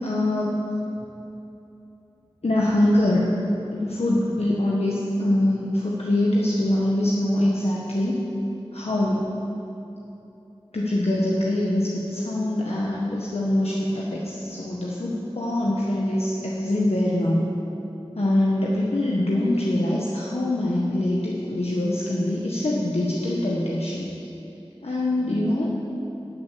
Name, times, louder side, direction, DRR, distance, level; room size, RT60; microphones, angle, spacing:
voice 1, 0.0-0.6 2.4-3.2 3.7-8.2 8.7-9.3 10.7-17.5 18.1-24.1 24.8-25.7, left 1 dB, 85° left, -5 dB, 1.4 m, -23 dB
11.5 x 9.0 x 8.6 m, 3.0 s
wide cardioid pair, 45°, 10 cm